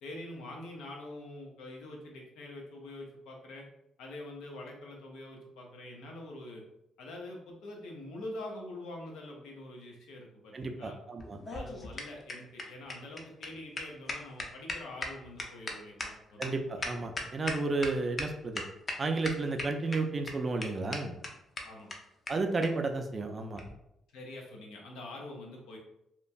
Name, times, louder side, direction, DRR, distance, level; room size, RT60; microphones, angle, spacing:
voice 1, 0.0-3.6 4.0-6.6 7.0-11.0 11.5-16.4 16.8-16.9 21.6-21.9 24.1-25.8, left 1 dB, 90° left, 0 dB, 0.6 m, -45 dB
voice 2, 10.5-11.4 16.4-18.6 19.0-21.2 22.3-23.6, right 3 dB, 35° right, 5 dB, 0.4 m, -32 dB
sound 1, 11.2-17.9 18.2-18.3 18.5-19.0 19.2-20.0 20.3-20.4 20.6-20.7 20.9-21.0 21.2-21.3 21.6-21.7 21.9-22.0 22.3-22.4 22.6-22.7 23.5-23.7, left 2 dB, 35° left, 0.5 m, -37 dB
2.9 x 2.3 x 2.5 m, 0.83 s
cardioid pair, 90°, 0 cm